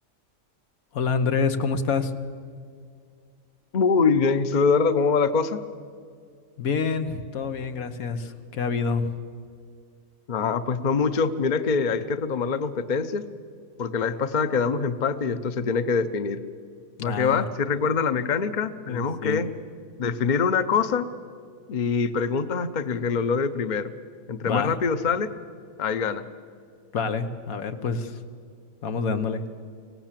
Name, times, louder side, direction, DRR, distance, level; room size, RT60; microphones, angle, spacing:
voice 1, 0.9-2.1 6.6-9.1 17.0-17.4 18.9-19.5 24.5-24.7 26.9-28.2 28.8-29.4, left 5 dB, 85° left, 8 dB, 1.6 m, -27 dB
voice 2, 3.7-5.6 10.3-13.3 13.8-16.4 17.0-19.5 20.0-21.1 21.7-23.9 24.3-25.3 25.8-26.2, left 5 dB, 40° left, 11 dB, 0.8 m, -24 dB
25.0 x 18.0 x 7.5 m, 2.2 s
omnidirectional pair, 1.4 m